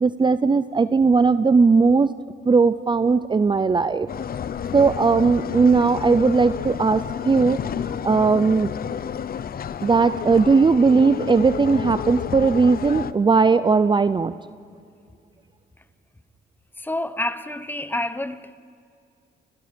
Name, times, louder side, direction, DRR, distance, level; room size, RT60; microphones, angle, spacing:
voice 1, 0.0-2.1 2.4-4.1 4.7-8.7 9.8-14.3, right 4 dB, 25° right, 0.6 m, -18 dB
sound 1, 4.1-13.1, left 8 dB, 50° left, 0.8 m, -30 dB
voice 2, 16.8-18.5, left 1 dB, 10° left, 1.1 m, -28 dB
29.5 x 28.0 x 5.3 m
cardioid pair, 90°, 20 cm